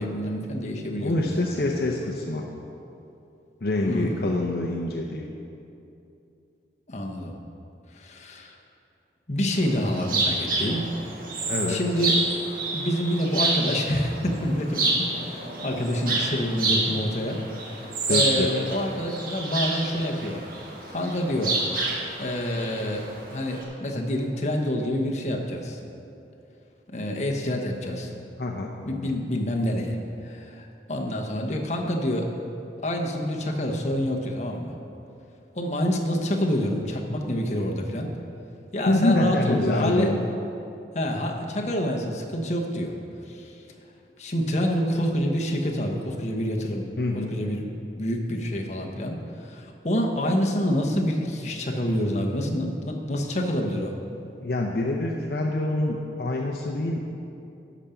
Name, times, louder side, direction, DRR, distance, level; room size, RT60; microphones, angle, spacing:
voice 1, 0.0-1.6 3.9-4.3 6.9-7.4 7.9-8.6 9.3-10.9 11.7-12.1 12.7-17.4 17.6-20.4 20.9-21.6 22.2-25.8 26.9-28.1 28.8-30.0 30.2-32.3 32.8-34.7 35.5-38.1 38.7-40.1 40.9-42.9 43.3-43.6 44.2-47.7 47.9-53.9, equal, 40° left, 1 dB, 1.0 m, -27 dB
voice 2, 1.0-2.4 3.6-5.2 11.5-11.8 18.1-18.5 28.4-28.8 38.8-40.2 47.0-47.4 54.4-57.0, left 2 dB, 60° left, 0 dB, 0.7 m, -26 dB
sound 1, 9.5-23.6, right 2 dB, 50° right, 1.6 m, -29 dB
11.5 x 5.1 x 6.9 m, 2.7 s
head